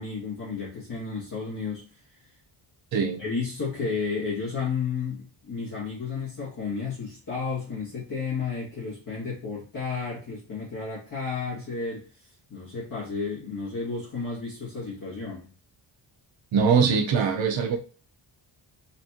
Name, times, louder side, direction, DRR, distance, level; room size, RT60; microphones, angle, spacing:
voice 1, 0.0-2.3 3.2-15.5, left 5 dB, 40° left, 2.2 m, -32 dB
voice 2, 16.5-17.8, right 6 dB, 70° right, 0.8 m, -22 dB
4.3 x 3.3 x 2.9 m
wide cardioid pair, 125°, 47 cm